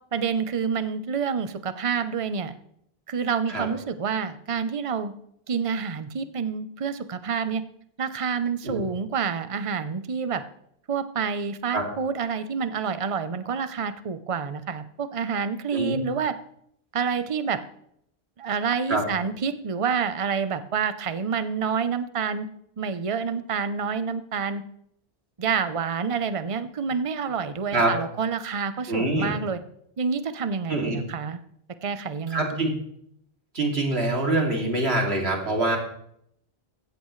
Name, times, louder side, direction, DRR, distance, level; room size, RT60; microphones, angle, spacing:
voice 1, 0.1-2.6 3.1-5.1 5.5-7.6 8.0-10.4 10.9-16.4 16.9-17.6 18.4-22.5 22.8-24.6 25.4-29.6 30.0-31.4 31.8-32.7, right 6 dB, 35° right, 11 dB, 0.8 m, -28 dB
voice 2, 28.9-29.3 30.7-31.0 32.3-32.7 33.5-35.8, right 2 dB, 80° right, 1 dB, 3.0 m, -24 dB
16.0 x 14.0 x 3.2 m, 0.70 s
omnidirectional pair, 1.1 m